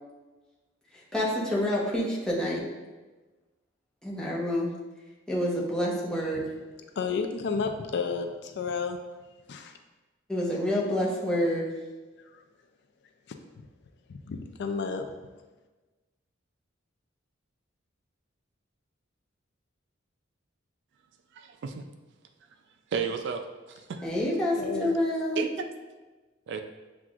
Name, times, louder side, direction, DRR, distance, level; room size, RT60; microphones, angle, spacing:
voice 1, 0.9-2.6 4.0-4.7 5.3-6.4 10.3-11.6 24.0-25.4, left 1 dB, 5° left, -6 dB, 0.8 m, -28 dB
voice 2, 7.0-9.0 9.5-9.7 12.3-12.4 14.1-15.1 24.6-25.0, left 5 dB, 60° left, 6 dB, 0.4 m, -31 dB
voice 3, 21.3-21.8 22.9-24.0 25.4-25.5 26.5-26.6, right 6 dB, 65° right, 7 dB, 0.3 m, -33 dB
7.2 x 2.4 x 2.4 m, 1.2 s
head